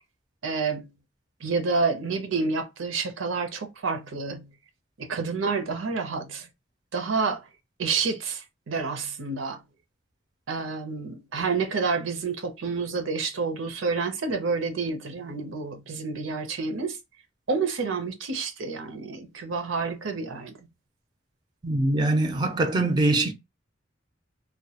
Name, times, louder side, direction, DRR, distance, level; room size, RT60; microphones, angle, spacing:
voice 1, 0.4-0.9 1.4-4.5 5.0-6.5 6.9-7.4 7.8-9.6 10.5-17.0 17.5-20.5, right 4 dB, 85° right, 0.5 m, -29 dB
voice 2, 21.6-23.3, right 2 dB, 20° right, 0.4 m, -23 dB
2.2 x 2.1 x 2.8 m
head